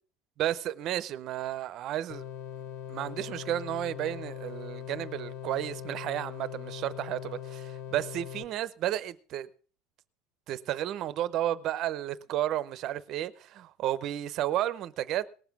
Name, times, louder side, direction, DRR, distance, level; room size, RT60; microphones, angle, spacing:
voice 1, 0.4-2.2 2.9-9.5 10.5-15.3, right 12 dB, 40° right, 0.7 m, -32 dB
sound 1, 2.1-8.4, left 10 dB, 50° left, 1.4 m, -41 dB
19.0 x 7.2 x 6.0 m
cardioid pair, 165°, 0 cm